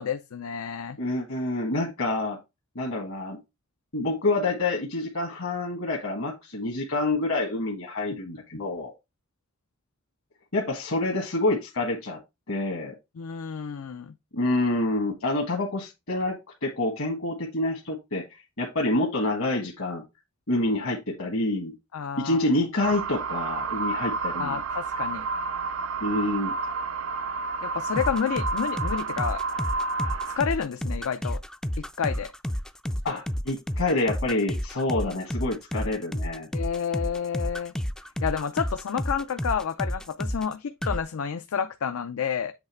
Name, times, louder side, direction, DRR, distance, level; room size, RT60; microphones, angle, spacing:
voice 1, 0.0-1.0 13.2-14.1 21.9-22.5 24.4-25.3 27.6-29.4 30.4-31.4 31.8-32.3 36.5-37.7 38.2-42.5, left 7 dB, 85° left, 0.5 m, -30 dB
voice 2, 1.0-2.4 2.7-3.4 3.9-8.9 10.5-12.2 12.5-12.9 14.3-18.2 18.6-20.0 20.5-21.7 22.2-24.6 26.0-26.6 33.0-36.5, left 2 dB, 70° left, 1.4 m, -27 dB
sound 1, 22.8-30.4, right 4 dB, 85° right, 0.6 m, -30 dB
sound 2, 28.0-40.5 40.8-41.0, equal, 5° left, 0.3 m, -31 dB
8.0 x 3.2 x 4.3 m
head